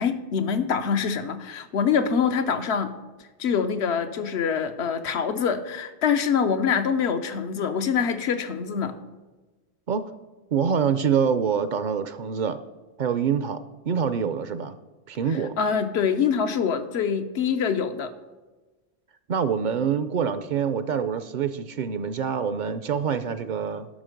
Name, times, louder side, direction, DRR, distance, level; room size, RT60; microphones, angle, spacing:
voice 1, 0.0-2.9 3.4-8.9 15.6-18.1, left 6 dB, 80° left, 9 dB, 1.0 m, -25 dB
voice 2, 10.5-12.6 13.0-13.6 13.9-14.8 15.1-15.6 19.3-23.9, right 7 dB, 60° right, 12 dB, 0.6 m, -25 dB
11.5 x 6.3 x 5.1 m, 1.2 s
omnidirectional pair, 1.1 m